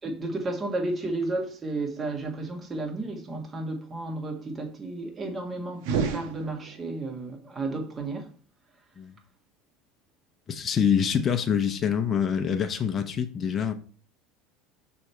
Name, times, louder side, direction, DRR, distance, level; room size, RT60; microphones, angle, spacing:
voice 1, 0.0-8.3, right 2 dB, 25° right, 1.6 m, -32 dB
sound 1, 5.8-7.1, right 7 dB, 75° right, 1.0 m, -30 dB
voice 2, 10.5-13.7, left 7 dB, 35° left, 0.8 m, -25 dB
6.2 x 3.4 x 4.4 m
supercardioid pair, 100°, 0 cm